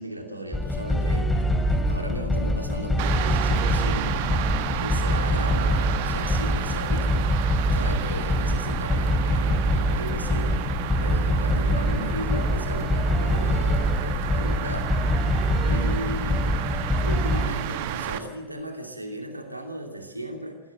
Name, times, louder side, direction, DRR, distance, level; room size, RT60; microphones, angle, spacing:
voice 1, 0.0-4.1 4.8-7.3 7.7-10.6 11.0-14.9 15.7-16.5 16.9-20.6, right 1 dB, 85° right, 3 dB, 2.8 m, -36 dB
sound 1, 0.5-17.5, left 1 dB, 5° left, 2.7 m, -24 dB
sound 2, 3.0-18.2, right 10 dB, 50° right, 1.4 m, -31 dB
20.0 x 17.0 x 8.1 m, 1.2 s
figure-of-eight pair, 90°, 0 cm